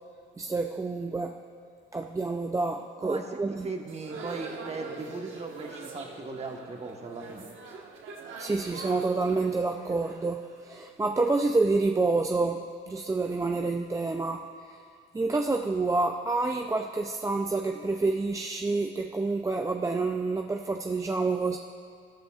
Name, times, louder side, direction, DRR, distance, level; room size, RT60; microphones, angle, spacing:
voice 1, 0.4-1.4 1.9-3.7 8.4-14.8 15.1-21.6, right 3 dB, 15° right, 3 dB, 0.4 m, -28 dB
voice 2, 3.0-7.5, right 3 dB, 35° right, 2 dB, 1.3 m, -38 dB
sound 1, 3.8-10.8, right 4 dB, 80° right, 1.4 m, -43 dB
14.0 x 13.0 x 2.4 m, 2.2 s
cardioid pair, 90°, 20 cm